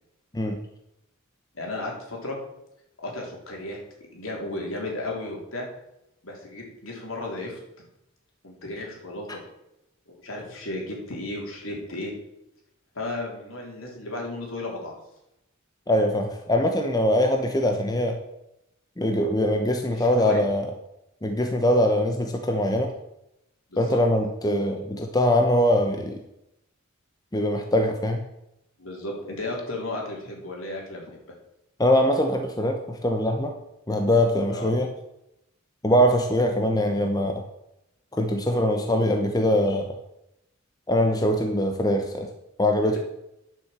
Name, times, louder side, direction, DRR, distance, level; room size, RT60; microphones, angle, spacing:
voice 1, 1.5-2.4 3.0-3.8 4.1-5.7 6.2-7.6 8.4-9.4 10.1-12.1 13.0-14.9 19.9-20.4 23.7-24.0 28.8-31.0 34.5-34.8 42.8-43.0, left 2 dB, 70° left, -1 dB, 3.7 m, -34 dB
voice 2, 15.9-18.2 19.0-20.6 21.2-22.9 23.8-26.2 27.3-28.2 31.8-33.5 33.9-34.9 35.8-37.4 38.1-39.9 40.9-42.3 42.6-43.0, left 1 dB, 20° left, 4 dB, 0.9 m, -22 dB
10.5 x 6.7 x 7.4 m, 0.86 s
head